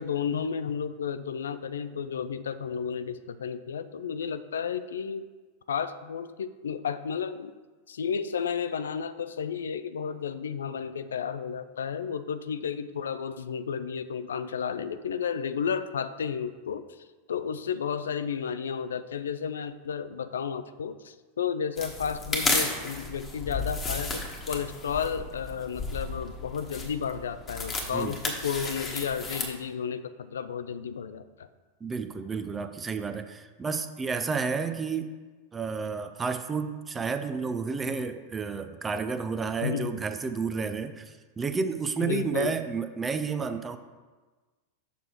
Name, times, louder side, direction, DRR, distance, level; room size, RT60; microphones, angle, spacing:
voice 1, 0.0-5.2 5.7-7.5 7.9-31.5 39.6-40.0 42.0-42.5, left 7 dB, 65° left, 12 dB, 0.4 m, -32 dB
sound 1, 21.8-29.5, left 3 dB, 20° left, 1.4 m, -33 dB
voice 2, 31.8-35.1 35.5-43.8, right 5 dB, 15° right, 9 dB, 0.5 m, -31 dB
6.9 x 6.1 x 4.5 m, 1.3 s
figure-of-eight pair, 90°, 0 cm